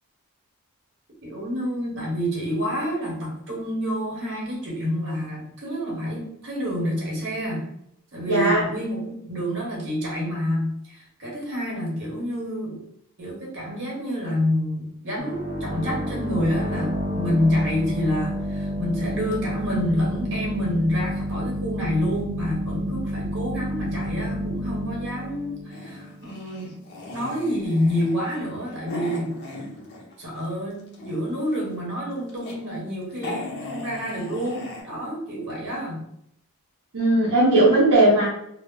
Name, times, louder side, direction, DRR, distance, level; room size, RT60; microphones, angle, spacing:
voice 1, 1.2-7.7 8.1-12.8 13.2-26.8 27.1-29.7 30.2-36.0, equal, 55° right, -4 dB, 1.1 m, -28 dB
voice 2, 8.3-8.6 36.9-38.3, right 1 dB, 70° right, -7 dB, 0.7 m, -17 dB
sound 1, 15.2-26.7, equal, 30° right, 0.6 m, -30 dB
sound 2, 25.7-30.3 30.7-31.5 32.0-32.6 32.9-33.0 33.2-34.8, left 2 dB, 50° left, 0.6 m, -37 dB
2.1 x 2.0 x 3.5 m, 0.74 s
head